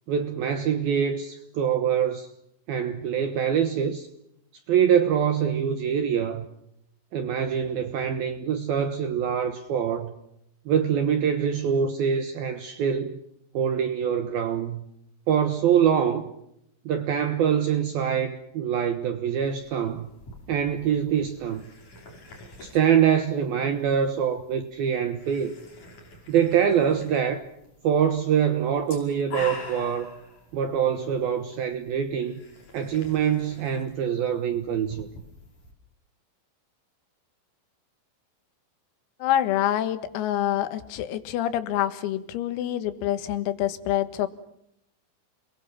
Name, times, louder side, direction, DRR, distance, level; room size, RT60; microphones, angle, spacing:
voice 1, 0.1-2.3 2.7-4.1 4.7-6.5 7.1-10.1 10.7-13.2 13.5-14.8 15.3-16.3 16.9-20.1 20.5-21.6 22.6-25.6 26.3-27.4 27.8-30.1 30.5-32.4 32.7-35.1, right 8 dB, 75° right, 2.3 m, -24 dB
sound 1, 19.4-35.7, left 3 dB, 40° left, 6.6 m, -46 dB
voice 2, 39.2-44.3, left 12 dB, 85° left, 4.3 m, -26 dB
29.0 x 22.0 x 7.4 m
omnidirectional pair, 6.0 m